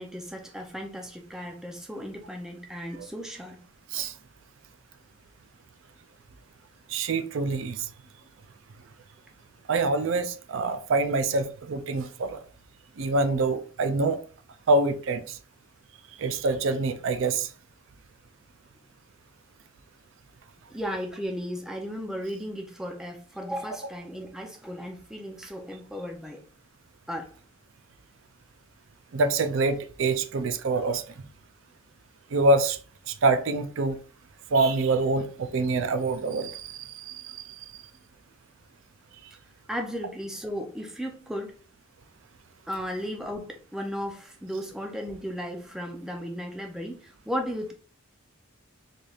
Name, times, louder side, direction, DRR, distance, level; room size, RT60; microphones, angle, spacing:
voice 1, 0.0-3.6 20.7-26.4 27.1-27.3 39.7-41.5 42.7-47.7, equal, ahead, 0.5 m, -35 dB
voice 2, 6.9-7.8 9.7-12.4 13.0-14.2 14.7-15.2 16.2-17.5 29.1-31.0 32.3-32.8 33.1-34.0 34.5-37.4, right 3 dB, 65° right, 0.4 m, -25 dB
4.1 x 3.3 x 2.4 m
head